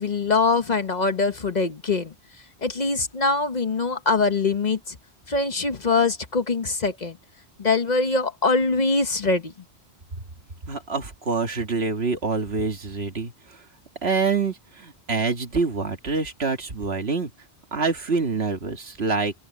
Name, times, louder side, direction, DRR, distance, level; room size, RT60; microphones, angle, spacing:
voice 1, 0.0-2.1 2.6-5.0 5.3-7.2 7.6-9.5, left 3 dB, 45° left, 1.1 m, -23 dB
voice 2, 10.7-13.6 14.0-17.3 17.7-19.3, right 4 dB, 70° right, 2.0 m, -26 dB
open air
omnidirectional pair, 1.1 m